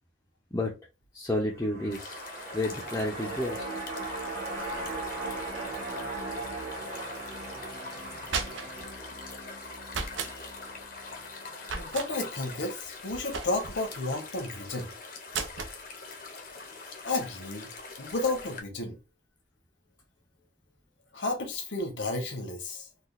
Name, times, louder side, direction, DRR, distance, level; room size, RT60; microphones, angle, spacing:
voice 1, 1.1-2.2 2.5-3.7 10.2-10.5, left 1 dB, 15° left, 0.6 m, -31 dB
sound 1, 1.5-11.9 12.2-12.3, right 2 dB, 50° right, 1.5 m, -39 dB
sound 2, 1.9-18.6, left 4 dB, 50° left, 0.7 m, -44 dB
sound 3, 8.0-8.9 9.9-10.3 11.6-12.1 13.3-13.8 15.3-15.8, right 5 dB, 85° right, 0.6 m, -34 dB
voice 2, 11.7-14.9 17.0-17.7 18.0-19.0 21.1-22.9, left 2 dB, 75° left, 1.1 m, -32 dB
4.0 x 2.4 x 2.4 m
head